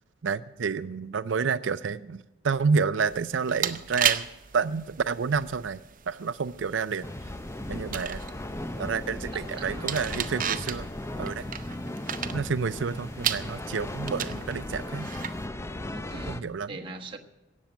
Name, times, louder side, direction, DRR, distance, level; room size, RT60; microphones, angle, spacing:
voice 1, 0.2-4.3 4.5-5.8 6.1-7.1 7.7-8.2 8.8-10.9 11.2-11.5 12.3-15.1 16.3-16.7, right 5 dB, 70° right, 0.5 m, -29 dB
sound 1, 3.0-15.5, right 9 dB, 45° right, 0.8 m, -35 dB
sound 2, 7.0-16.4, left 1 dB, 15° left, 0.6 m, -36 dB
voice 2, 9.3-9.9 15.9-17.2, right 3 dB, 25° right, 1.3 m, -42 dB
17.5 x 7.4 x 9.1 m
head